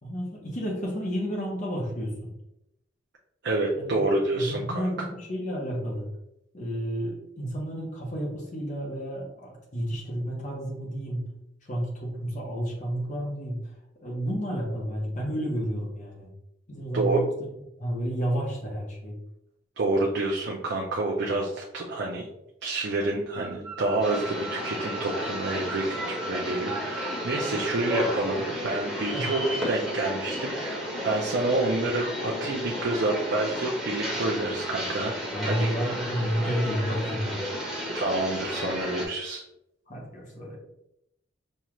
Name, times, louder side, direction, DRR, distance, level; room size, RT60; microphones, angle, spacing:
voice 1, 0.0-2.3 3.8-4.0 4.3-6.1 6.5-11.3 11.6-13.6 14.0-16.3 16.7-17.3 17.8-19.1 29.1-29.2 35.3-37.4 39.9-40.6, equal, 45° left, -2 dB, 0.9 m, -31 dB
voice 2, 3.4-4.9 16.9-17.2 19.8-22.3 22.6-35.1 35.4-35.7 37.9-39.4, right 2 dB, 65° right, -1 dB, 0.6 m, -28 dB
sound 1, 23.3-28.2, right 2 dB, 30° right, 1.2 m, -40 dB
sound 2, 24.0-39.1, equal, ahead, 1.3 m, -33 dB
5.4 x 2.4 x 3.0 m, 0.82 s
head